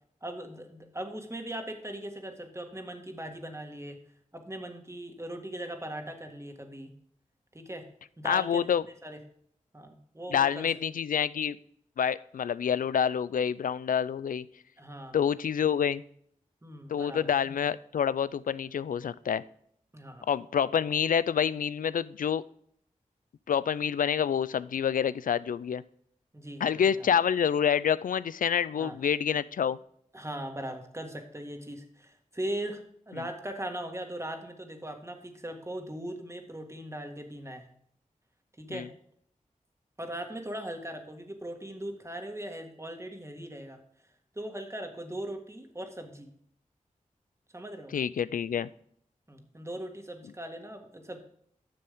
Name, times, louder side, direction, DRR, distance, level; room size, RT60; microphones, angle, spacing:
voice 1, 0.2-4.0 4.3-6.9 7.5-7.9 8.2-9.2 9.7-10.7 14.8-15.2 16.6-17.3 19.9-20.3 26.3-27.1 28.7-29.0 30.1-37.7 38.6-38.9 40.0-43.8 44.4-46.3 47.5-47.9 49.3-51.2, right 1 dB, 20° right, 4 dB, 1.9 m, -39 dB
voice 2, 8.2-8.8 10.3-11.6 12.0-14.5 15.1-16.0 16.9-19.4 20.3-22.4 23.5-25.8 26.6-29.8 38.7-38.9 47.9-48.7, left 8 dB, 90° left, 18 dB, 0.4 m, -27 dB
10.5 x 6.8 x 3.6 m, 0.66 s
cardioid pair, 50°, 14 cm